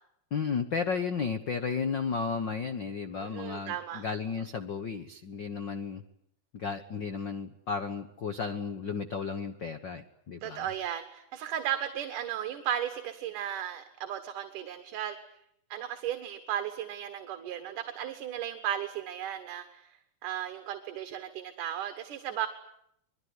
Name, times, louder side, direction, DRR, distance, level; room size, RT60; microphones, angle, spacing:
voice 1, 0.3-6.0 6.5-10.7, left 5 dB, 75° left, 8 dB, 1.0 m, -33 dB
voice 2, 3.2-4.0 10.4-15.2 15.7-20.0 20.2-22.5, right 10 dB, 65° right, 8 dB, 2.9 m, -35 dB
25.5 x 21.5 x 9.7 m, 0.75 s
omnidirectional pair, 4.1 m